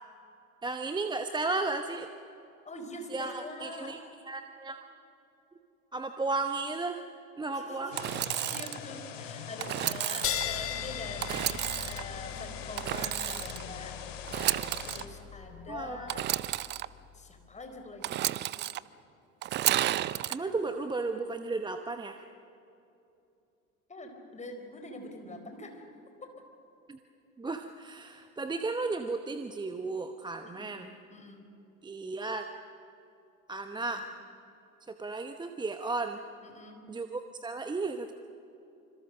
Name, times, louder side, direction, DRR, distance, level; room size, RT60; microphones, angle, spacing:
voice 1, 0.6-2.1 3.1-4.0 4.3-4.8 5.9-7.0 7.4-8.1 15.7-16.1 20.3-22.2 26.9-27.0 27.4-30.9 31.8-32.5 33.5-34.0 34.9-36.2 36.9-38.1, right 3 dB, 10° right, 7 dB, 0.9 m, -34 dB
voice 2, 2.6-4.0 7.5-7.9 8.4-14.0 14.5-16.2 16.6-16.7 17.1-18.2 23.9-25.9 26.2-26.3 30.4-30.8 31.1-31.5 33.8-34.0 36.4-36.8, left 2 dB, 15° left, 5 dB, 4.5 m, -44 dB
sound 1, 7.9-15.1, left 8 dB, 60° left, 2.5 m, -43 dB
Engine / Sawing, 8.0-8.8 9.6-10.4 11.2-12.0 12.8-13.6 14.2-15.0 16.1-16.9 18.0-18.8 19.4-20.4, right 14 dB, 25° right, 0.6 m, -31 dB
sound 2, 10.2-17.2, left 9 dB, 30° left, 1.7 m, -39 dB
26.5 x 26.0 x 6.6 m, 2.7 s
figure-of-eight pair, 75°, 42 cm